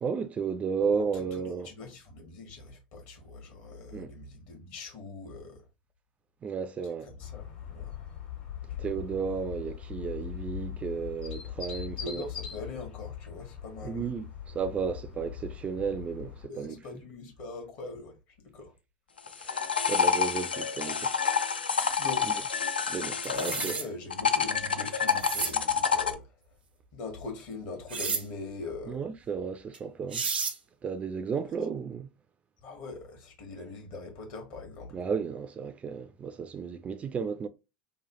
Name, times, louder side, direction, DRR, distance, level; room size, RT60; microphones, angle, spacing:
voice 1, 0.0-1.7 3.9-4.1 6.4-7.1 8.8-12.2 13.8-16.8 19.4-21.1 22.9-23.7 28.9-30.2 30.8-32.1 34.9-37.5, right 6 dB, 25° right, 0.3 m, -33 dB
voice 2, 0.8-5.7 6.8-8.1 8.7-8.8 12.0-14.1 16.5-18.7 19.2-19.5 22.0-22.3 23.3-26.5 26.9-29.1 32.6-35.0, left 3 dB, 50° left, 1.3 m, -42 dB
sound 1, 7.2-16.5, left 10 dB, 65° left, 1.5 m, -41 dB
sound 2, 19.2-23.8 24.1-26.1, left 6 dB, 85° left, 0.4 m, -28 dB
sound 3, 23.2-23.9 25.1-25.5 27.9-28.2 29.7-29.8 30.1-30.6, right 5 dB, 80° right, 0.5 m, -31 dB
3.0 x 2.2 x 2.9 m
figure-of-eight pair, 80°, 5 cm